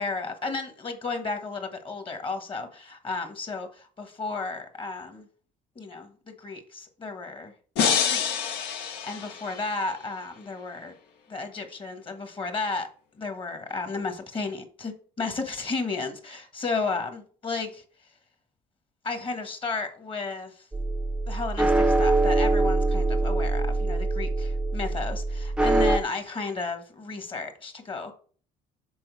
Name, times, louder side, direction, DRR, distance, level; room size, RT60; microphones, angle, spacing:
voice 1, 0.0-5.3 5.7-7.5 7.9-10.9 11.3-12.9 13.2-17.8 19.0-20.6 21.3-28.1, left 3 dB, 30° left, 1.4 m, -33 dB
sound 1, 7.8-9.9, left 7 dB, 80° left, 1.1 m, -27 dB
sound 2, 20.7-26.0, right 2 dB, 5° right, 0.6 m, -24 dB
6.2 x 4.4 x 4.6 m
cardioid pair, 110°, 17 cm